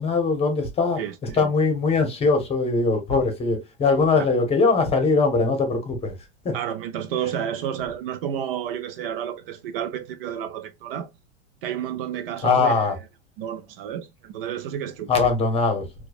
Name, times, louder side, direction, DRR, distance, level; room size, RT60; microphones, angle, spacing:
voice 1, 0.0-6.1 6.4-6.6 12.4-13.0 15.1-15.9, left 4 dB, 20° left, 0.9 m, -21 dB
voice 2, 1.0-1.5 4.1-4.3 6.5-11.1 11.6-12.9 13.4-15.1, right 9 dB, 55° right, 0.6 m, -31 dB
4.5 x 2.3 x 2.3 m
supercardioid pair, 140°, 34 cm